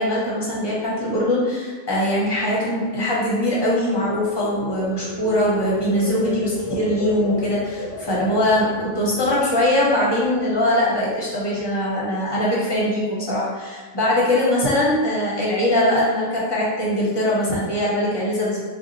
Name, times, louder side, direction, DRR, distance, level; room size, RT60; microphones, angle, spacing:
voice 1, 0.0-18.6, left 1 dB, 25° left, -6 dB, 0.7 m, -21 dB
sound 1, 3.5-10.6 11.0-11.4, left 2 dB, 55° left, 0.8 m, -35 dB
2.7 x 2.2 x 3.9 m, 1.5 s
omnidirectional pair, 1.4 m